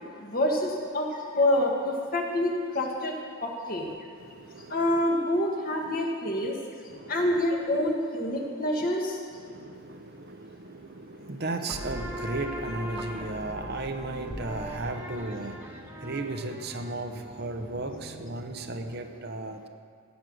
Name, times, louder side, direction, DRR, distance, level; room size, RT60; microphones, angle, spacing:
voice 1, 0.2-3.9 4.7-6.6 7.1-9.2, left 1 dB, 45° left, 0 dB, 1.8 m, -27 dB
voice 2, 4.2-5.0 6.4-6.5 6.8-7.4 8.4-8.9 9.3-19.7, right 2 dB, 50° right, 6 dB, 0.9 m, -36 dB
sound 1, 11.7-19.0, equal, 10° right, 1.4 m, -40 dB
15.5 x 9.3 x 6.3 m, 2.3 s
head